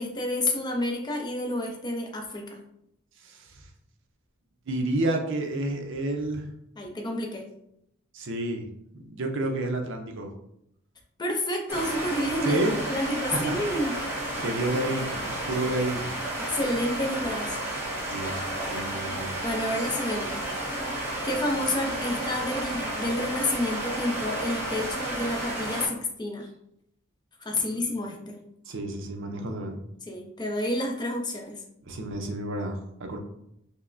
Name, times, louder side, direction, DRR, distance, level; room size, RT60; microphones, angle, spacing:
voice 1, 0.0-2.6 6.8-7.5 11.2-12.6 12.9-13.9 14.8-15.0 16.5-17.6 19.4-20.5 21.2-26.5 27.4-28.4 30.1-31.6, left 1 dB, 20° left, 1 dB, 0.5 m, -29 dB
voice 2, 4.7-6.4 8.1-8.7 8.9-10.3 12.4-12.7 13.3-13.6 14.4-16.1 18.1-18.4 18.7-19.3 27.5-27.6 28.7-29.8 31.9-33.2, right 2 dB, 60° right, 3 dB, 0.6 m, -30 dB
sound 1, 11.7-25.9, right 1 dB, 10° right, 0.8 m, -32 dB
5.3 x 2.0 x 2.5 m, 0.77 s
head